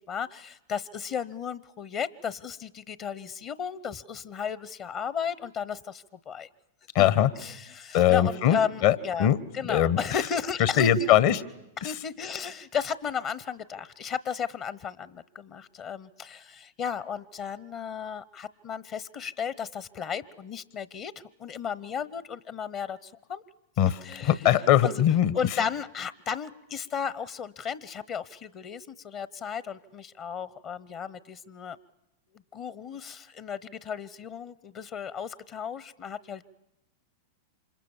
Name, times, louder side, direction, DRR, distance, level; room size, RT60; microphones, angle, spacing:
voice 1, 0.1-6.5 7.0-7.1 7.4-9.3 9.5-11.1 11.8-21.1 21.4-23.4 24.0-24.4 24.8-25.0 25.3-31.8 32.5-36.4, left 7 dB, 40° left, 18 dB, 0.9 m, -34 dB
voice 2, 6.9-7.3 7.9-9.4 9.7-10.0 10.6-11.4 11.8-11.9 23.8-25.3, left 10 dB, 55° left, 17 dB, 1.4 m, -21 dB
28.5 x 26.0 x 7.3 m, 0.89 s
hypercardioid pair, 105°, 0 cm